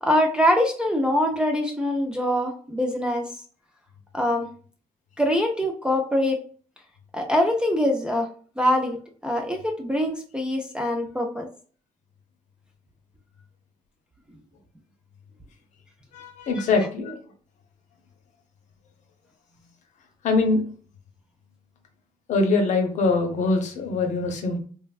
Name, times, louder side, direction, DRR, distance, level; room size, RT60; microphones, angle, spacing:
voice 1, 0.0-3.3 4.1-4.5 5.2-6.4 7.1-8.3 8.6-9.0 9.2-11.5 16.6-16.7, left 1 dB, 5° right, 1 dB, 0.3 m, -23 dB
voice 2, 16.1-17.2 20.2-20.6 22.3-24.6, left 3 dB, 55° left, 4 dB, 0.7 m, -23 dB
3.2 x 2.2 x 2.3 m, 0.43 s
cardioid pair, 165°, 15 cm